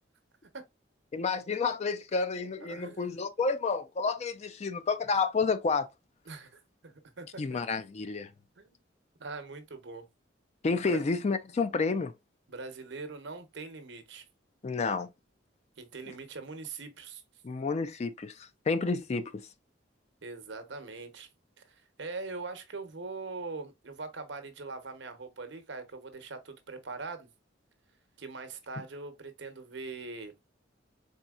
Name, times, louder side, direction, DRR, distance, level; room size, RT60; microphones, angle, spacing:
voice 1, 1.1-5.9 7.4-8.3 10.6-12.1 14.6-15.1 17.4-19.3, left 4 dB, 35° left, 0.4 m, -30 dB
voice 2, 2.6-3.1 6.3-7.6 8.6-8.8 9.2-10.1 10.9-11.0 12.5-14.2 15.8-17.2 20.2-21.3 21.7-27.3 28.2-30.4, right 3 dB, 70° right, 0.8 m, -42 dB
4.1 x 3.5 x 2.3 m
head